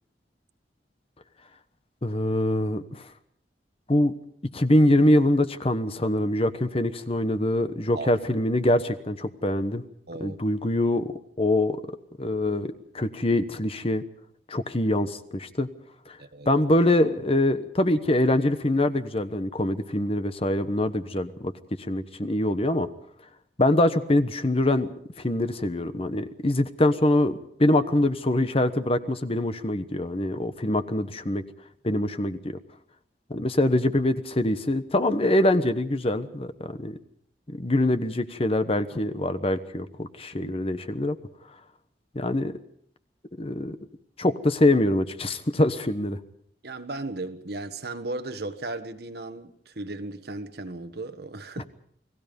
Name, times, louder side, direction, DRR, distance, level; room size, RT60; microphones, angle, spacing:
voice 1, 2.0-3.0 3.9-4.1 4.5-9.8 10.2-11.8 12.2-14.0 14.5-15.7 16.1-16.2 16.5-21.5 21.9-22.9 23.6-24.9 25.2-31.4 31.8-32.6 33.3-37.0 37.5-41.2 42.1-42.5 43.4-43.8 44.2-46.2, left 1 dB, 35° left, 1.1 m, -24 dB
voice 2, 16.2-16.5 40.4-40.5 46.6-51.6, right 2 dB, 65° right, 1.5 m, -36 dB
29.5 x 19.5 x 5.3 m
head